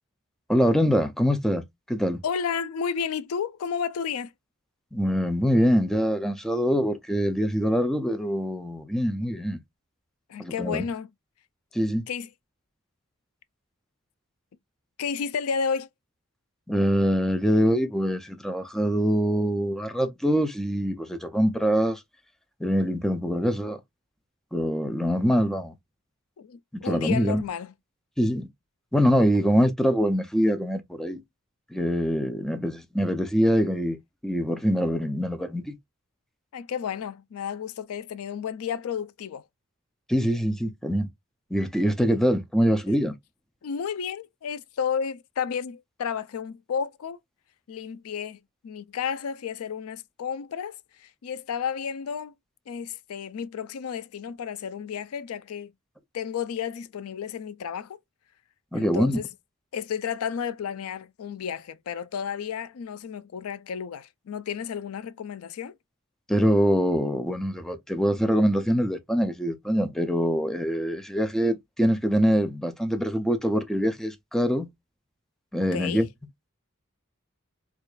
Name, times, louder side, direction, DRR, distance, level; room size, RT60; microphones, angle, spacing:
voice 1, 0.5-2.2 4.9-9.6 10.4-10.8 11.7-12.1 16.7-22.0 22.6-23.8 24.5-25.7 26.7-27.4 28.2-28.5 28.9-31.2 31.7-34.0 34.2-35.7 40.1-41.1 41.5-43.1 58.7-59.2 66.3-74.7 75.5-76.1, equal, ahead, 0.5 m, -24 dB
voice 2, 2.2-4.3 10.3-11.1 12.1-12.3 15.0-15.9 26.4-27.7 36.5-39.4 42.9-43.0 43.6-47.2 47.7-52.3 52.7-55.7 56.1-58.0 58.7-59.3 59.7-65.7 75.7-76.0, left 7 dB, 85° left, 0.4 m, -32 dB
4.5 x 2.5 x 2.3 m
head